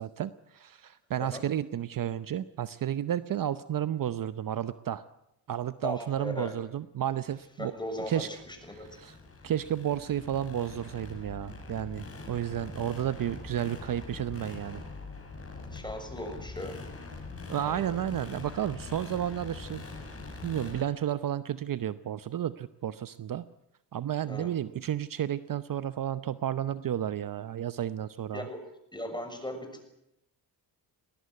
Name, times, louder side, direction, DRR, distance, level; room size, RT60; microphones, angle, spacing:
voice 1, 0.0-5.0 5.5-7.7 8.1-8.3 8.7-9.2 9.4-14.8 17.5-19.8 20.4-23.4 23.9-28.5, right 10 dB, 50° right, 14 dB, 0.8 m, -32 dB
voice 2, 5.8-6.5 7.6-9.0 15.7-16.8 17.6-17.8 24.3-24.5 28.3-28.6 28.9-29.9, left 1 dB, 10° left, 5 dB, 6.5 m, -38 dB
sound 1, 7.5-20.8, left 3 dB, 30° left, 6.4 m, -44 dB
20.5 x 19.0 x 9.6 m, 0.83 s
cardioid pair, 90°, 44 cm